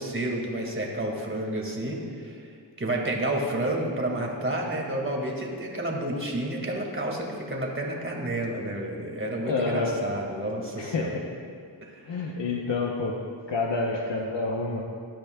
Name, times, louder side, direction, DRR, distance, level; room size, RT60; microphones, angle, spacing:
voice 1, 0.0-2.4 2.8-11.2 11.8-12.4, right 1 dB, 25° right, -1 dB, 2.0 m, -30 dB
voice 2, 9.4-9.9 10.8-11.1 12.1-13.2 13.5-14.8, left 3 dB, 70° left, -1 dB, 1.0 m, -28 dB
16.5 x 10.5 x 2.3 m, 2.2 s
cardioid pair, 50°, 45 cm